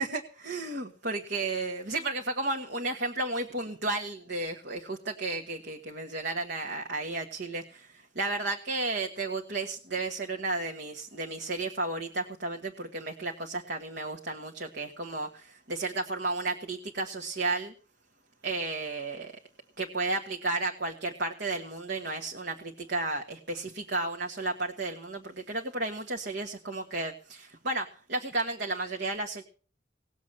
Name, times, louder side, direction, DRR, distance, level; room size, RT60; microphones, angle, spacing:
voice 1, 0.0-17.7 18.4-19.4 19.8-29.4, right 2 dB, 60° right, 2 dB, 1.5 m, -33 dB
19.0 x 7.2 x 7.5 m, 0.40 s
head